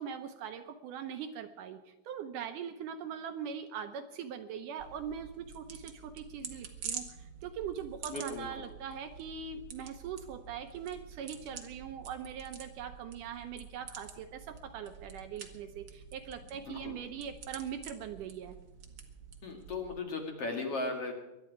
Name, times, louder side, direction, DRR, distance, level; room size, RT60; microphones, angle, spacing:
voice 1, 0.0-18.6, right 7 dB, 75° right, 8 dB, 2.1 m, -41 dB
sound 1, 4.8-20.0, right 6 dB, 50° right, 1.5 m, -48 dB
voice 2, 8.1-8.6 16.5-17.0 19.4-21.1, left 3 dB, 45° left, 2 dB, 2.6 m, -37 dB
23.0 x 11.0 x 4.8 m, 0.99 s
omnidirectional pair, 4.2 m